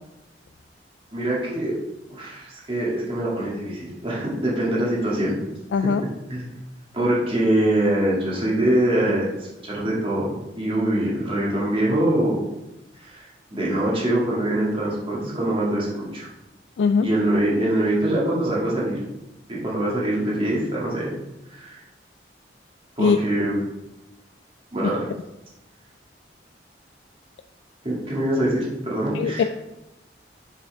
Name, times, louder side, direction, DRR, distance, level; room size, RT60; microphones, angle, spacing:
voice 1, 1.1-1.8 2.1-5.4 6.3-6.5 6.9-9.2 9.6-12.4 13.0-13.3 13.5-16.3 17.0-19.0 19.5-21.1 21.5-21.8 23.0-23.6 24.7-25.0 27.8-29.5, right 1 dB, 30° right, -5 dB, 2.2 m, -23 dB
voice 2, 5.7-6.0 16.8-17.1 23.0-23.2 24.8-24.9 29.1-29.4, left 5 dB, 80° left, 9 dB, 0.3 m, -20 dB
6.8 x 5.8 x 3.5 m, 0.97 s
head